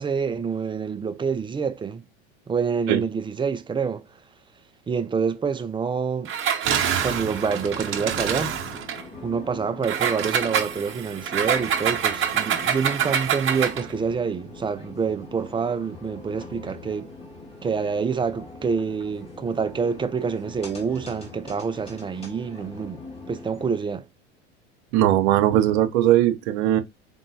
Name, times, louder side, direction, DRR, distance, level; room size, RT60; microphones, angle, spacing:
voice 1, 0.0-2.0 2.5-4.0 4.9-6.3 7.0-8.5 9.2-17.1 17.6-23.0 23.3-24.0, right 5 dB, 15° right, 0.4 m, -27 dB
Engine, 6.2-9.0 9.8-13.9, right 8 dB, 35° right, 0.9 m, -26 dB
sound 1, 7.0-23.8, left 3 dB, 15° left, 1.8 m, -43 dB
voice 2, 24.9-26.8, right 13 dB, 65° right, 0.8 m, -19 dB
3.9 x 3.6 x 2.7 m
hypercardioid pair, 90°, 34 cm